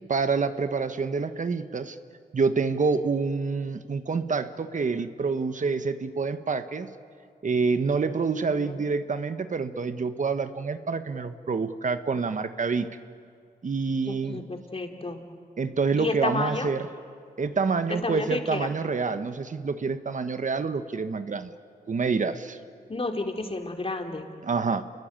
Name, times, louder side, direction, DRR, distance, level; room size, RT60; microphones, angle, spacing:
voice 1, 0.1-2.0 2.3-6.9 7.4-12.9 13.6-14.4 15.6-16.9 17.4-21.5 21.9-22.6 24.4-24.8, right 4 dB, 55° right, 10 dB, 1.4 m, -27 dB
voice 2, 8.5-8.8 14.0-15.2 16.0-16.7 17.9-18.7 22.9-24.3, left 2 dB, 35° left, 3 dB, 3.3 m, -31 dB
29.0 x 22.0 x 9.0 m, 2.2 s
cardioid pair, 70°, 16 cm